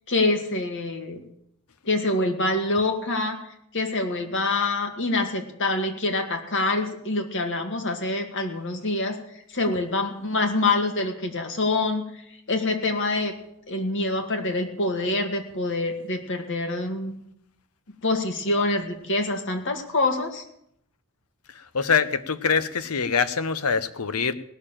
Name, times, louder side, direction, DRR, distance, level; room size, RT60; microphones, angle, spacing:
voice 1, 0.1-1.2 1.9-3.4 3.7-9.2 9.5-12.0 12.5-13.3 13.7-17.1 18.0-20.4, left 2 dB, 60° left, 5 dB, 2.1 m, -25 dB
voice 2, 21.7-24.3, left 6 dB, 85° left, 14 dB, 0.9 m, -24 dB
18.0 x 6.8 x 8.9 m, 0.75 s
head